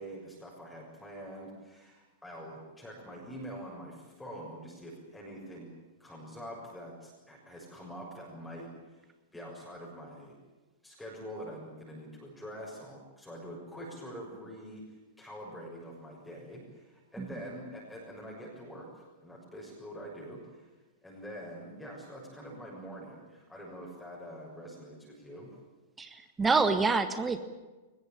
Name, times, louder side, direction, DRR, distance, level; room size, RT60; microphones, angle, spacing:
voice 1, 0.0-5.7 6.0-10.4 10.8-20.7 21.0-25.6, equal, 5° left, -3 dB, 6.7 m, -45 dB
voice 2, 26.0-27.4, right 4 dB, 15° right, 9 dB, 1.7 m, -27 dB
23.0 x 21.0 x 9.1 m, 1.2 s
figure-of-eight pair, 100°, 0 cm